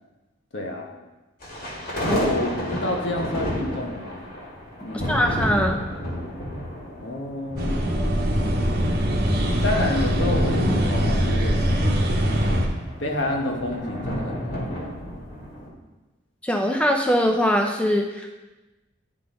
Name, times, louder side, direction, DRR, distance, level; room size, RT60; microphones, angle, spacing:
voice 1, 0.5-0.9 2.0-4.3 4.8-5.2 7.0-7.8 9.6-12.7 13.0-15.0, left 1 dB, 70° left, 1 dB, 1.1 m, -29 dB
sound 1, 1.4-15.7, equal, 50° left, 1.8 m, -32 dB
voice 2, 5.1-5.8 16.4-18.3, equal, 5° left, 3 dB, 0.4 m, -22 dB
sound 2, 7.6-12.7, equal, 55° right, 1.0 m, -22 dB
10.5 x 3.8 x 3.8 m, 1.1 s
head